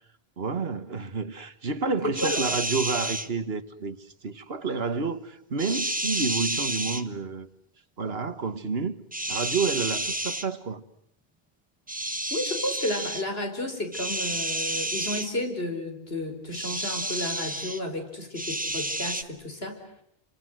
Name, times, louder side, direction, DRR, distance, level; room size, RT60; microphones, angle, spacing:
voice 1, 0.4-7.5 8.0-9.0 9.3-10.8, right 4 dB, 75° right, 1.8 m, -30 dB
voice 2, 2.0-2.4 12.3-19.9, left 1 dB, 80° left, 5.2 m, -32 dB
sound 1, 2.1-3.3 5.6-7.0 9.1-10.5 11.9-13.2 13.9-15.3 16.5-17.8 18.3-19.2, right 1 dB, 10° right, 1.2 m, -30 dB
29.5 x 25.0 x 8.0 m
omnidirectional pair, 1.0 m